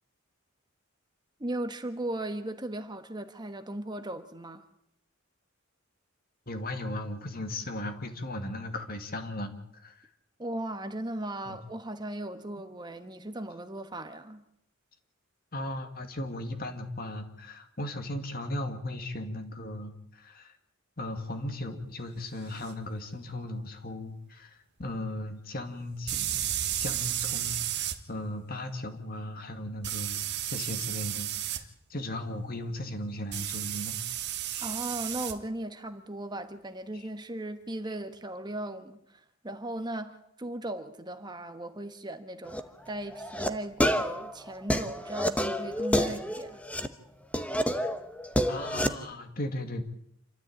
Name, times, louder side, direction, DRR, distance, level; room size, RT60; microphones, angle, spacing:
voice 1, 1.4-4.6 10.4-14.4 34.6-42.6 42.9-46.6, right 1 dB, 20° right, 1.3 m, -37 dB
voice 2, 6.5-10.1 11.5-11.6 15.5-20.6 21.0-34.0 34.5-34.7 48.5-49.8, left 1 dB, 45° left, 2.3 m, -37 dB
sound 1, 22.6-22.7 26.1-28.0 29.8-31.6 33.3-35.4, right 12 dB, 55° right, 1.6 m, -32 dB
sound 2, 42.4-42.6 43.1-43.5 43.8-46.9 47.3-48.9, equal, 5° left, 1.0 m, -29 dB
27.5 x 13.0 x 8.8 m
head